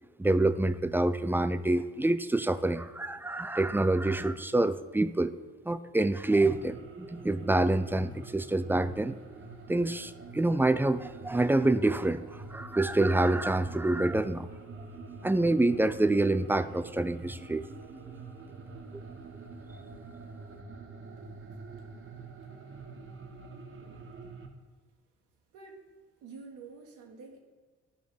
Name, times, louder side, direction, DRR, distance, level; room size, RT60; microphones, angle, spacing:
voice 1, 0.2-5.3 5.7-9.2 9.7-14.5 15.2-17.6 18.9-19.0, right 2 dB, 5° right, 13 dB, 0.4 m, -27 dB
sound 1, 6.4-24.5, right 4 dB, 40° right, 1.3 m, -46 dB
voice 2, 23.8-24.3 25.5-25.8 26.2-27.4, right 4 dB, 70° right, 1 dB, 1.4 m, -49 dB
10.5 x 4.9 x 5.2 m, 1.5 s
hypercardioid pair, 45°, 34 cm